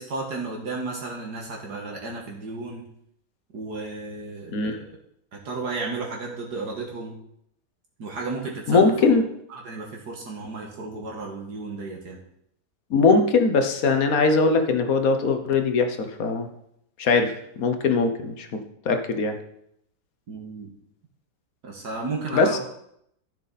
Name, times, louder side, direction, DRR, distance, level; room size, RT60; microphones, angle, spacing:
voice 1, 0.0-2.8 3.5-4.8 5.3-7.2 8.0-9.1 9.5-12.2 20.3-20.7 21.6-22.6, right 3 dB, 70° right, -1 dB, 2.2 m, -33 dB
voice 2, 8.7-9.2 12.9-16.5 17.0-18.6 18.8-19.4 22.3-22.6, left 4 dB, 55° left, 6 dB, 1.5 m, -21 dB
13.5 x 6.9 x 4.2 m, 0.73 s
omnidirectional pair, 1.9 m